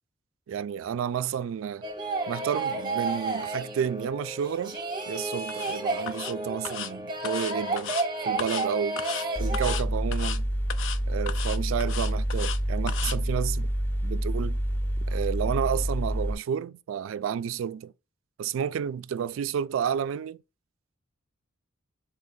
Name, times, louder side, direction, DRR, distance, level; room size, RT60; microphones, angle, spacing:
voice 1, 0.5-1.9 2.3-4.8 5.1-7.9 8.2-9.0 9.4-10.5 11.1-13.7 14.0-14.6 15.1-17.9 18.4-20.4, right 8 dB, 70° right, 0.3 m, -31 dB
sound 1, 1.8-9.8, right 3 dB, 20° right, 0.7 m, -31 dB
sound 2, 5.5-5.7 6.1-6.3 6.6-6.9 7.2-8.0 8.4-8.7 9.0-9.3 9.5-9.8 10.1-10.4 10.7-11.0 11.3-12.6 12.9-13.2, left 9 dB, 65° left, 0.4 m, -35 dB
Mechanical fan, 9.4-16.3, equal, 10° left, 0.6 m, -28 dB
3.8 x 2.7 x 3.7 m
head